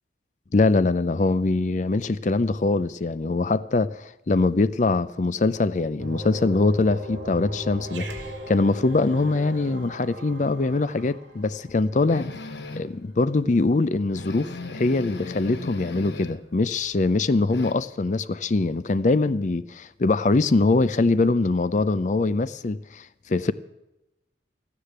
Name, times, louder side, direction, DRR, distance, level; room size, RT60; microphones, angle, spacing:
voice 1, 0.5-8.1 8.5-12.3 12.8-23.5, left 3 dB, 40° left, 0.5 m, -23 dB
sound 1, 6.0-11.7, equal, 50° right, 3.4 m, -37 dB
Growling, 7.8-12.5, right 4 dB, 85° right, 2.3 m, -47 dB
sound 2, 12.1-13.0 13.5-13.6 13.8-13.9 14.1-16.5 16.8-17.7, left 2 dB, 70° left, 1.1 m, -37 dB
13.0 x 10.0 x 8.1 m
head